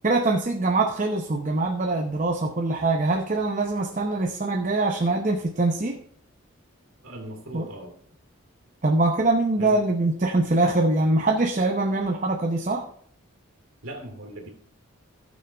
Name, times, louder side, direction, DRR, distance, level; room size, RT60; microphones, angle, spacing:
voice 1, 0.0-6.0 7.5-7.6 8.8-12.9, right 2 dB, 35° right, 0.7 m, -23 dB
voice 2, 7.0-8.0 9.6-9.9 13.8-14.5, right 1 dB, 75° right, 2.5 m, -39 dB
15.0 x 6.4 x 3.4 m
head